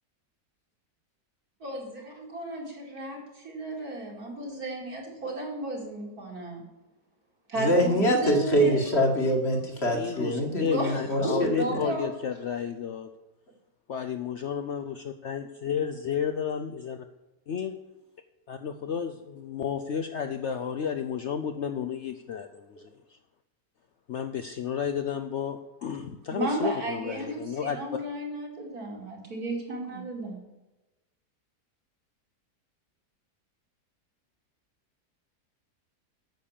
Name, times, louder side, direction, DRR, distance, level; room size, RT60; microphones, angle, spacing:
voice 1, 1.6-6.6 7.5-8.8 10.7-12.1 26.3-30.4, right 2 dB, 65° right, -1 dB, 3.2 m, -34 dB
voice 2, 7.6-11.8, equal, 40° left, 2 dB, 1.9 m, -24 dB
voice 3, 9.9-13.1 13.9-17.0 17.5-17.8 18.5-23.2 24.1-27.8, left 7 dB, 60° left, 7 dB, 0.8 m, -32 dB
9.4 x 6.7 x 7.4 m, 1.0 s
omnidirectional pair, 1.7 m